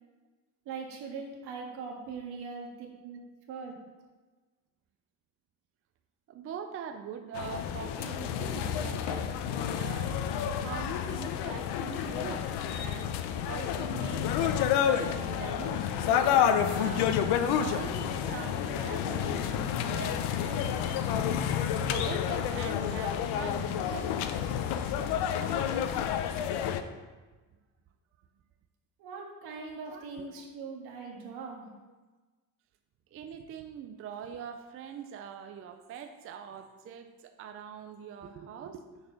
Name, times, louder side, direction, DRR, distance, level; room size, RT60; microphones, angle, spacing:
voice 1, 0.7-3.2 3.5-3.7 29.0-31.7, right 5 dB, 75° right, 0 dB, 1.7 m, -41 dB
voice 2, 6.3-10.2 10.6-12.5 12.7-13.1 13.5-16.2 16.7-17.2 17.5-21.2 21.8-24.1 29.9-30.5 33.1-39.0, right 7 dB, 35° right, 6 dB, 0.4 m, -43 dB
sound 1, 7.3-26.8, left 9 dB, 85° left, 0.7 m, -30 dB
6.6 x 4.4 x 5.6 m, 1.3 s
cardioid pair, 145°, 39 cm